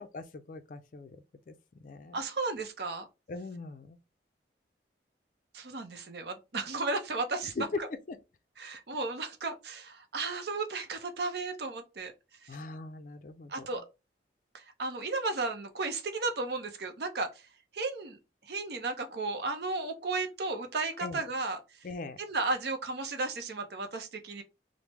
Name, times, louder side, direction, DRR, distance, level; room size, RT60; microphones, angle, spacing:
voice 1, 0.0-2.2 3.3-4.0 7.6-7.8 8.1-8.2 12.5-13.7 21.0-21.2 21.8-22.2, left 3 dB, 50° left, 0.4 m, -40 dB
voice 2, 2.1-3.1 5.5-7.9 8.6-12.1 12.4-12.6 13.5-13.8 14.5-17.5 17.7-21.9 22.2-24.4, right 3 dB, 65° right, 0.6 m, -34 dB
3.0 x 2.0 x 3.3 m
head